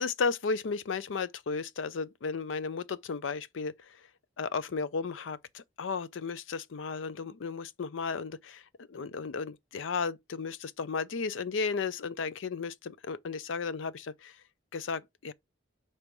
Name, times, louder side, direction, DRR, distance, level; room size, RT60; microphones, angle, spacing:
voice 1, 0.0-4.0 4.4-14.4 14.7-15.3, left 5 dB, 80° left, 0.5 m, -34 dB
5.2 x 4.2 x 4.6 m
head